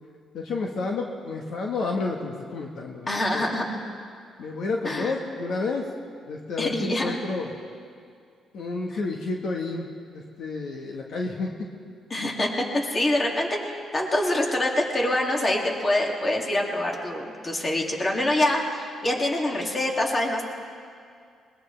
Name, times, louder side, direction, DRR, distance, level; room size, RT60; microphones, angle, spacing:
voice 1, 0.3-3.1 3.3-3.5 4.4-5.9 6.3-7.5 8.5-11.7, left 3 dB, 70° left, 0 dB, 1.4 m, -30 dB
voice 2, 3.1-3.8 4.8-5.2 6.6-7.3 8.9-9.0 12.1-20.4, left 1 dB, 30° left, 0 dB, 2.5 m, -25 dB
20.5 x 20.0 x 3.4 m, 2.3 s
cardioid pair, 90°, 0 cm